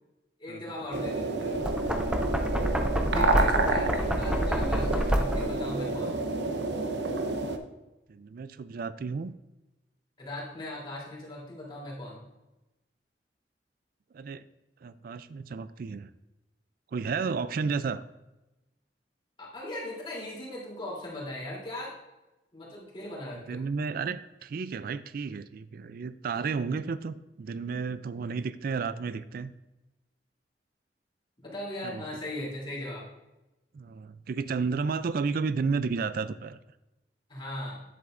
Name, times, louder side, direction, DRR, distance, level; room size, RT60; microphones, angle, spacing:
voice 1, 0.4-1.7 3.0-6.3 10.2-12.2 19.4-21.9 22.5-23.6 31.4-33.1 37.3-37.8, left 1 dB, 30° left, -5 dB, 3.1 m, -38 dB
sound 1, 0.9-7.6, right 2 dB, 80° right, 0.8 m, -29 dB
Knock, 1.5-5.6, equal, 5° right, 0.6 m, -28 dB
voice 2, 8.1-9.3 14.1-14.4 14.8-16.1 16.9-18.0 23.5-29.5 31.8-32.1 33.7-36.6, right 5 dB, 55° right, 14 dB, 0.3 m, -32 dB
10.0 x 7.8 x 2.5 m, 1.0 s
head